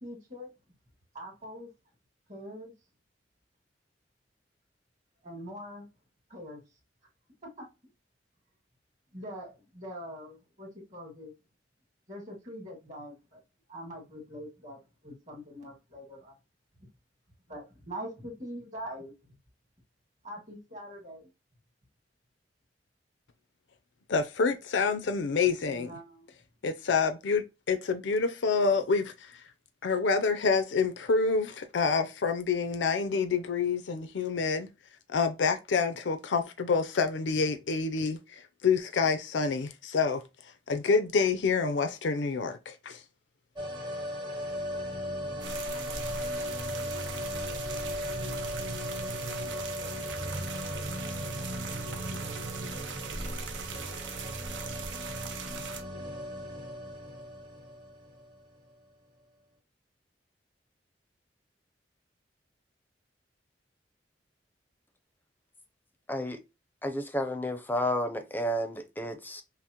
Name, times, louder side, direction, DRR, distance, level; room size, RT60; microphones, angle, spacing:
voice 1, 0.0-0.5 1.1-1.7 2.3-2.7 5.2-5.9 6.3-6.6 7.6-7.7 9.1-11.3 12.1-13.4 13.7-16.3 16.8-16.9 17.5-19.1 20.2-21.3 25.6-26.3 34.2-34.4, equal, 45° right, 2.0 m, -43 dB
voice 2, 24.1-25.9 26.6-29.3 29.8-34.7 35.1-40.2 40.7-43.0, left 5 dB, 85° left, 0.5 m, -27 dB
sound 1, 43.6-58.4 58.7-58.8, equal, 25° right, 0.8 m, -37 dB
sound 2, 45.4-55.8, right 5 dB, 90° right, 0.7 m, -40 dB
sound 3, 47.1-53.9, right 4 dB, 70° right, 1.3 m, -47 dB
voice 3, 66.1-66.4 66.8-69.4, equal, 10° left, 0.5 m, -31 dB
5.7 x 2.1 x 2.9 m
head